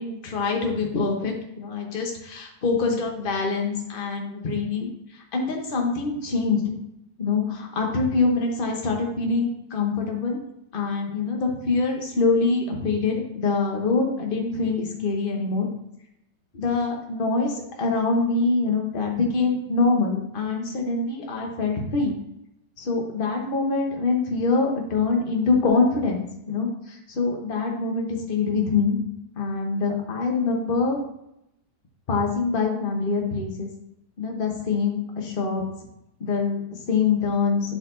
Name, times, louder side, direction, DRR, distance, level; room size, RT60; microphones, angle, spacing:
voice 1, 0.0-4.9 5.3-6.7 7.2-10.4 10.7-15.7 16.5-22.1 22.8-29.0 29.4-31.0 32.1-33.7 34.2-35.6 36.2-37.8, left 4 dB, 35° left, 1 dB, 1.1 m, -24 dB
10.0 x 4.1 x 2.7 m, 0.81 s
omnidirectional pair, 1.9 m